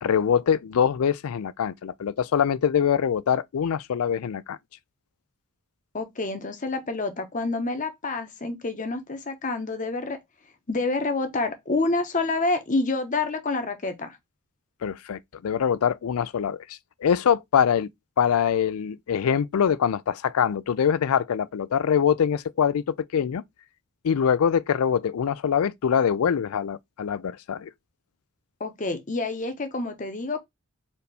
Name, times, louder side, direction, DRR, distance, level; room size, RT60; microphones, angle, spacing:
voice 1, 0.0-4.6 14.8-17.9 18.2-23.4 24.0-27.7, left 8 dB, 75° left, 0.4 m, -24 dB
voice 2, 5.9-10.2 10.7-14.2 28.6-30.4, left 3 dB, 35° left, 0.8 m, -28 dB
4.1 x 2.8 x 3.3 m
head